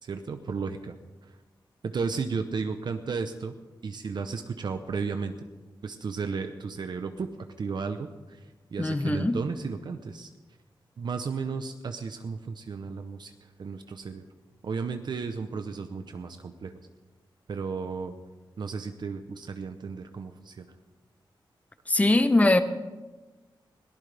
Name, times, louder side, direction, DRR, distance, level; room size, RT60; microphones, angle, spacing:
voice 1, 0.0-1.0 1.8-3.5 3.8-5.5 5.8-7.3 7.6-8.4 8.7-10.3 11.0-13.3 13.6-14.3 14.6-16.8 17.5-18.1 18.6-20.7, right 5 dB, 60° right, 7 dB, 0.8 m, -34 dB
voice 2, 8.8-9.4 21.9-22.6, left 2 dB, 15° left, 10 dB, 0.8 m, -21 dB
21.5 x 18.0 x 3.5 m, 1.2 s
wide cardioid pair, 165°, 8 cm